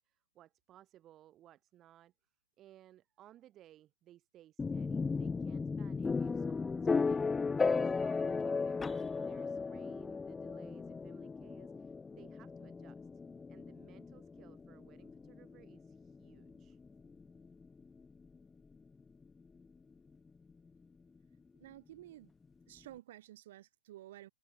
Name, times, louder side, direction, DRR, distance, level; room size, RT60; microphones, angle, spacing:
voice 1, 0.0-2.1 2.6-13.0 13.5-16.8, right 13 dB, 25° right, 3.4 m, -61 dB
sound 1, 4.6-18.4, left 4 dB, 10° left, 0.5 m, -36 dB
voice 2, 21.6-22.3 22.7-24.3, right 14 dB, 50° right, 2.7 m, -52 dB
hypercardioid pair, 145°, 0 cm